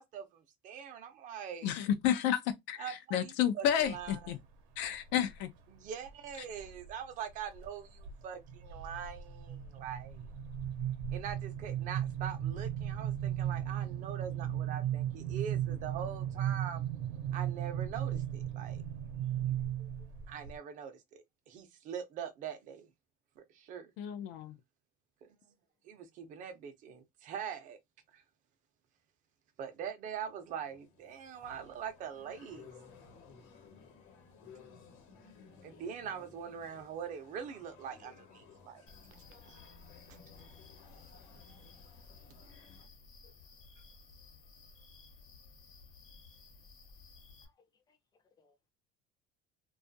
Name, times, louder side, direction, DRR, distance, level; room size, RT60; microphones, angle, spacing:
voice 1, 0.0-1.7 2.8-4.4 5.7-10.3 11.1-16.8 17.3-18.8 20.3-22.9 23.4-23.9 25.2-25.3 25.8-27.8 28.1-28.2 29.6-32.7 35.6-38.9 39.5-39.6 40.1-40.2, right 8 dB, 45° right, 0.5 m, -43 dB
voice 2, 1.6-4.4 4.8-5.5 24.0-24.6, left 10 dB, 75° left, 0.4 m, -31 dB
sound 1, 3.8-4.4 4.8-5.4 6.1-6.9 7.3-7.7 8.0-20.6, right 10 dB, 85° right, 0.7 m, -36 dB
voice 3, 19.8-20.1 43.2-43.3 47.4-48.0 48.4-48.7, left 3 dB, 20° left, 0.5 m, -68 dB
sound 2, 30.1-42.9, left 5 dB, 90° left, 1.0 m, -58 dB
sound 3, 38.9-47.5, left 4 dB, 50° left, 0.8 m, -56 dB
2.5 x 2.3 x 2.5 m
cardioid pair, 165°, 19 cm